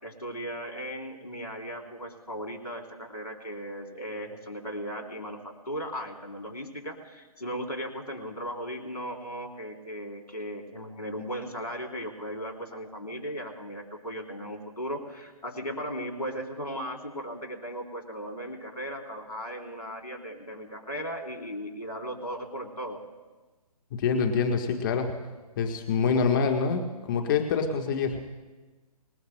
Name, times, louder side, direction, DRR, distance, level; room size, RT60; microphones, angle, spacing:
voice 1, 0.0-23.0, equal, 85° left, 1 dB, 3.5 m, -37 dB
voice 2, 23.9-25.1 25.6-28.3, left 5 dB, 35° left, 4 dB, 1.3 m, -26 dB
26.0 x 16.5 x 2.2 m, 1.3 s
figure-of-eight pair, 140°, 20 cm